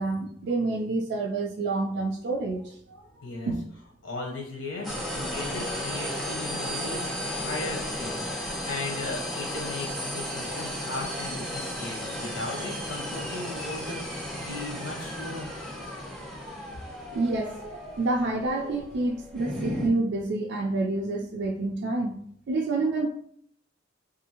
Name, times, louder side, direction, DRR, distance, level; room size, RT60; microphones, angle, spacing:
voice 1, 0.0-2.6 2.9-3.1 3.4-3.6 17.1-22.2 22.5-23.1, right 2 dB, 60° right, 1 dB, 0.3 m, -28 dB
voice 2, 3.2-3.5 4.0-8.2 8.5-15.5, left 2 dB, 85° left, -1 dB, 0.9 m, -37 dB
sound 1, 4.8-19.9, equal, ahead, 0.6 m, -34 dB
2.6 x 2.6 x 2.8 m, 0.66 s
head